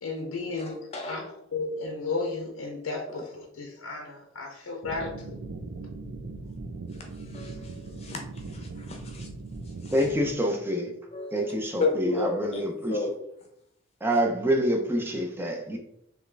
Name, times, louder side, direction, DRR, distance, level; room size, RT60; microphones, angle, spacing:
voice 1, 0.0-1.2 1.5-5.4, left 3 dB, 80° left, 1 dB, 0.6 m, -34 dB
voice 2, 0.6-1.3 7.0-9.3 9.8-9.9 11.1-11.5 11.8-13.2, left 2 dB, 30° left, 2 dB, 0.7 m, -33 dB
sound 1, 4.8-10.3, right 3 dB, 75° right, 0.5 m, -39 dB
voice 3, 9.9-10.9 11.3-13.0 14.0-15.8, equal, 10° right, 2 dB, 0.5 m, -26 dB
3.6 x 3.1 x 3.2 m, 0.77 s
head